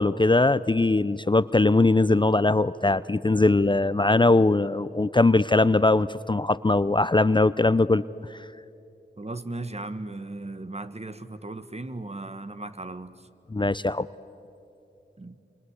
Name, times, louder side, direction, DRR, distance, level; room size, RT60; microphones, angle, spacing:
voice 1, 0.0-8.0 8.3-8.4 13.5-14.1, left 2 dB, 25° left, 0.5 m, -21 dB
voice 2, 9.2-13.1 15.2-15.4, right 2 dB, 35° right, 1.4 m, -36 dB
28.0 x 25.5 x 8.2 m
cardioid pair, 45°, 19 cm